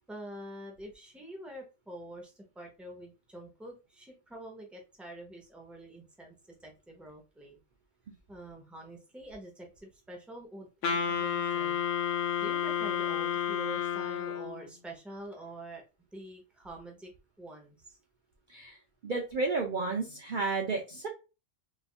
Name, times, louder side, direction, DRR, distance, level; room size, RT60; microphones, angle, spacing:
voice 1, 0.1-6.3 6.6-7.6 8.3-12.1 12.4-15.8 16.1-17.1 17.4-18.0, right 1 dB, ahead, 1 dB, 0.8 m, -46 dB
Wind instrument woodwind instrument, 10.8-14.7, left 8 dB, 75° left, 1.1 m, -31 dB
voice 2, 19.0-21.1, right 3 dB, 50° right, 2 dB, 0.6 m, -32 dB
4.1 x 2.6 x 2.4 m, 0.30 s
omnidirectional pair, 1.3 m